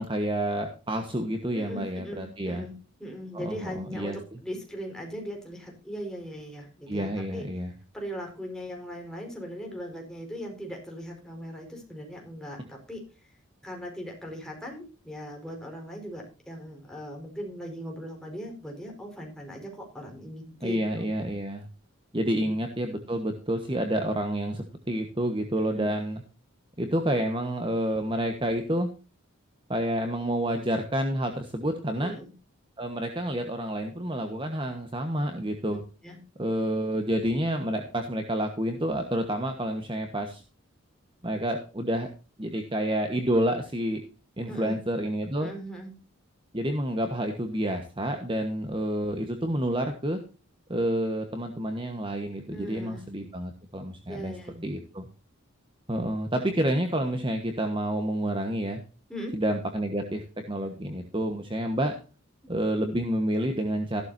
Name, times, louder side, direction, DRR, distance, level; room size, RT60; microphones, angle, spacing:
voice 1, 0.0-2.6 3.3-4.2 6.9-7.7 20.6-21.7 22.1-26.2 26.8-28.9 29.7-32.1 32.8-35.8 36.4-40.4 41.2-42.1 42.4-44.0 44.4-45.5 46.5-50.2 50.7-54.3 54.6-55.1 55.9-58.8 59.3-62.0 62.5-64.0, right 1 dB, 25° right, 5 dB, 1.4 m, -29 dB
voice 2, 1.5-2.7 3.0-7.4 7.9-13.3 13.6-21.1 22.3-22.5 25.6-25.9 32.0-32.3 35.7-35.8 36.0-36.2 44.5-44.8 45.4-45.9 52.5-53.0 54.1-54.6 59.1-59.3, equal, 5° left, 0 dB, 4.8 m, -39 dB
15.0 x 12.0 x 2.8 m, 0.33 s
head